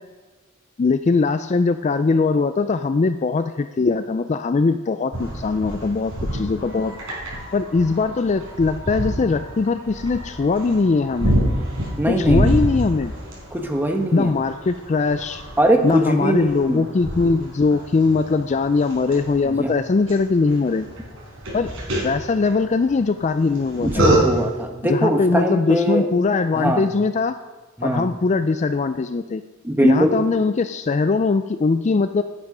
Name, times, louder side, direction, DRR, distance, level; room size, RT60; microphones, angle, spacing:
voice 1, 0.8-7.0 7.5-11.3 12.2-13.1 14.1-15.4 15.8-20.9 21.5-21.7 22.0-24.1 24.8-27.4 27.8-29.4 29.8-32.2, left 4 dB, 35° left, 10 dB, 0.3 m, -21 dB
sound 1, 5.1-24.6, right 1 dB, 70° right, 4.5 m, -28 dB
voice 2, 12.0-12.7 13.5-14.3 15.6-16.8 19.4-19.7 23.8-26.1 26.5-26.9 27.8-28.1 29.6-30.2, right 1 dB, 10° right, 4 dB, 1.1 m, -21 dB
11.0 x 9.6 x 5.5 m, 1.3 s
head